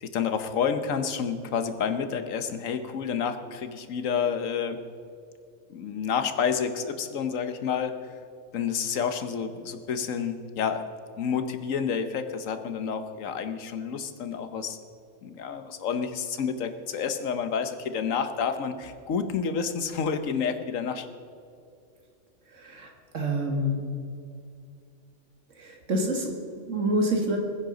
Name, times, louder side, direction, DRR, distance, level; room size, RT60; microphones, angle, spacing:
voice 1, 0.0-4.8 5.7-8.1 8.5-10.8 11.2-14.8 15.2-21.1, left 6 dB, 80° left, 9 dB, 1.3 m, -29 dB
voice 2, 22.5-23.8 25.6-27.4, right 1 dB, 70° right, 2 dB, 2.1 m, -28 dB
20.5 x 9.8 x 3.9 m, 2.5 s
omnidirectional pair, 1.4 m